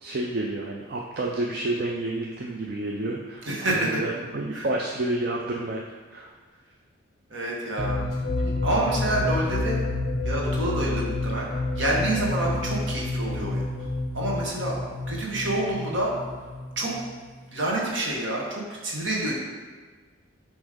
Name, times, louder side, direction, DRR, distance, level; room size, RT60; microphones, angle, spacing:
voice 1, 0.0-5.8 6.1-6.3, right 2 dB, 50° right, 0 dB, 0.4 m, -30 dB
voice 2, 3.5-4.0 4.5-4.7 7.3-8.0 8.4-9.9 10.2-11.5 11.8-14.7 15.1-16.1 16.8-16.9 17.5-19.3, right 1 dB, 65° right, -3 dB, 1.3 m, -28 dB
sound 1, 7.8-17.4, left 2 dB, 35° left, 0.6 m, -29 dB
7.0 x 3.1 x 5.0 m, 1.4 s
head